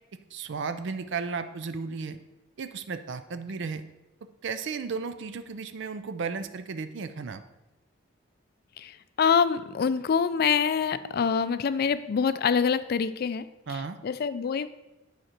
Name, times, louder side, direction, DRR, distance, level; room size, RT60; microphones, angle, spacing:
voice 1, 0.3-2.2 2.6-3.8 4.4-7.4 13.7-14.0, right 5 dB, 65° right, 10 dB, 0.4 m, -34 dB
voice 2, 8.8-14.7, left 6 dB, 50° left, 14 dB, 0.4 m, -26 dB
9.2 x 5.0 x 4.4 m, 0.99 s
head